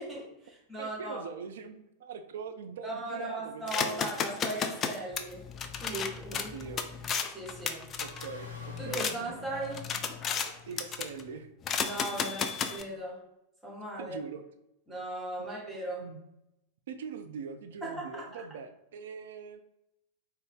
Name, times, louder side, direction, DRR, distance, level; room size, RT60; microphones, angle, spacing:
voice 1, 0.0-1.2 2.8-5.4 5.8-6.5 7.3-7.8 8.8-9.8 11.8-13.2 13.6-14.2 14.9-16.0 17.8-18.2, right 1 dB, 10° right, -4 dB, 1.4 m, -38 dB
voice 2, 0.8-4.1 6.3-6.8 8.0-9.0 10.3-11.5 12.2-12.3 14.0-14.4 15.4-15.5 16.0-16.2 16.9-19.6, right 6 dB, 60° right, 9 dB, 0.3 m, -42 dB
sound 1, 3.7-9.1 9.6-10.5 10.8-11.2 11.6-12.8, left 6 dB, 30° left, 0.3 m, -33 dB
sound 2, 8.0-11.0, equal, 75° left, 1.0 m, -49 dB
3.8 x 2.3 x 3.6 m, 0.87 s
figure-of-eight pair, 90°, 0 cm